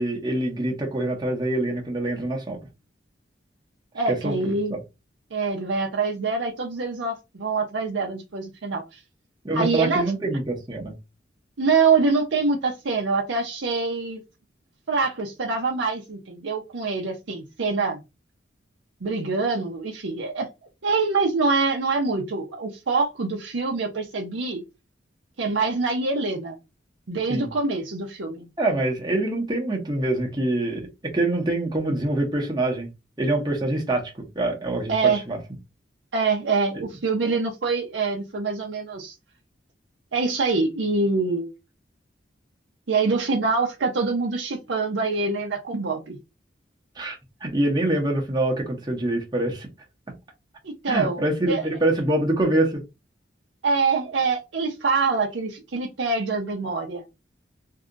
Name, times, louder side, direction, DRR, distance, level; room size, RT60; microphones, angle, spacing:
voice 1, 0.0-2.6 4.1-4.8 9.4-10.9 27.3-27.5 28.6-30.9 31.1-32.9 33.2-35.4 36.7-36.8 47.0-49.7 50.9-52.8, right 2 dB, 20° right, 0.9 m, -25 dB
voice 2, 3.9-4.7 5.3-9.0 9.5-10.0 11.6-14.2 14.9-18.0 19.0-20.5 20.8-24.6 25.4-26.6 27.1-28.5 34.9-35.2 36.1-39.1 40.1-41.5 42.9-46.2 50.6-51.6 53.6-57.0, right 4 dB, 80° right, 0.6 m, -25 dB
2.7 x 2.4 x 3.7 m
head